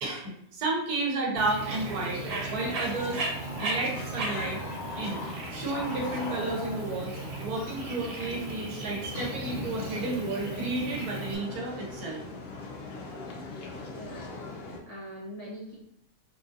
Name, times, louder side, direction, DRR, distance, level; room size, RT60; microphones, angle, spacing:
voice 1, 0.0-2.2 2.5-3.2 3.6-4.6 4.9-5.2 5.5-7.1 7.4-12.2, right 2 dB, 85° right, -2 dB, 1.3 m, -32 dB
Bird, 1.4-11.4, right 4 dB, 65° right, 0.6 m, -37 dB
sound 1, 1.6-14.8, left 3 dB, 65° left, 0.6 m, -39 dB
voice 2, 13.9-14.4 14.9-15.8, equal, 30° left, -7 dB, 0.8 m, -42 dB
3.8 x 2.5 x 2.5 m, 0.75 s
omnidirectional pair, 1.5 m